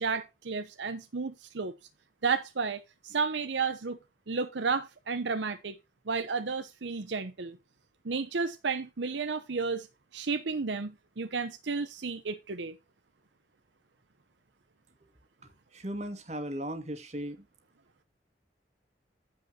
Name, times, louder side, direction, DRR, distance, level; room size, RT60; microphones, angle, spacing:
voice 1, 0.0-1.7 2.2-4.0 4.3-5.8 6.1-7.6 8.0-9.9 10.1-12.7, right 4 dB, 75° right, 0.8 m, -32 dB
voice 2, 15.7-17.5, equal, 35° right, 1.9 m, -37 dB
15.0 x 5.2 x 2.8 m
head